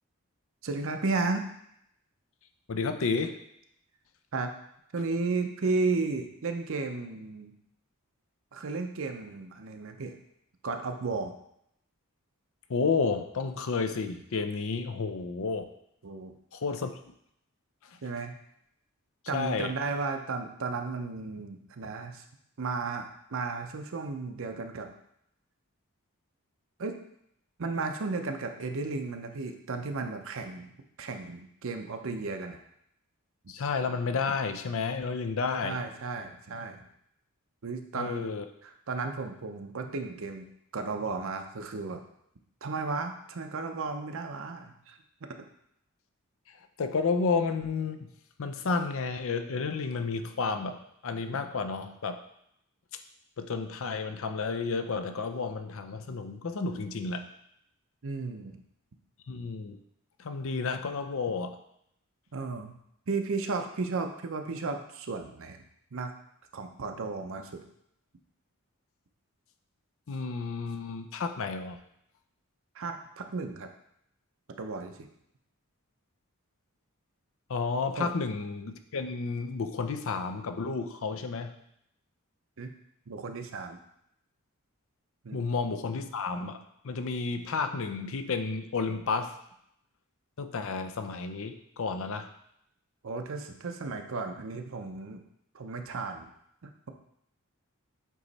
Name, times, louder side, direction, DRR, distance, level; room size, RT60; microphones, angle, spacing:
voice 1, 0.6-1.5 4.3-4.5 4.9-7.5 8.5-10.1 10.6-11.3 16.0-16.3 18.0-18.4 19.3-22.2 22.6-24.9 26.8-26.9 27.6-30.7 31.0-32.6 35.6-36.8 37.6-38.3 38.6-40.5 40.7-42.0 42.6-45.0 58.0-58.6 62.3-62.8 63.1-65.6 65.9-66.1 66.5-67.6 72.7-73.7 74.6-75.1 78.0-78.1 82.6-82.7 83.1-83.8 85.2-85.4 93.0-95.2 95.5-96.3, right 3 dB, 60° right, 5 dB, 0.6 m, -34 dB
voice 2, 2.7-3.4 12.7-15.7 16.5-16.9 19.3-19.7 33.5-35.8 37.9-38.4 46.8-48.1 48.4-50.8 51.0-52.2 53.4-57.3 59.3-59.8 60.2-61.6 70.1-71.8 77.5-81.5 85.3-89.3 90.4-92.3, left 4 dB, 65° left, 7 dB, 0.5 m, -31 dB
8.1 x 3.1 x 4.1 m, 0.76 s
head